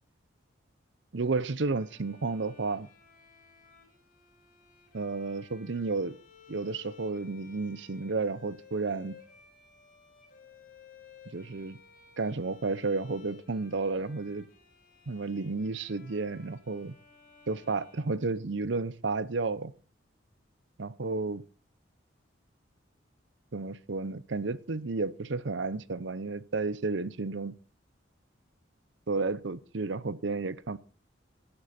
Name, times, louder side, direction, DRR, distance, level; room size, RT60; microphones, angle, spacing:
voice 1, 1.1-2.9 4.9-6.2 6.5-9.2 11.3-11.8 12.2-14.5 15.1-16.9 17.5-19.7 20.8-21.4 23.5-27.5 29.1-30.8, right 3 dB, 65° right, 0.7 m, -32 dB
Bowed string instrument, 1.6-18.8, left 6 dB, 45° left, 5.6 m, -57 dB
16.0 x 11.5 x 4.3 m
head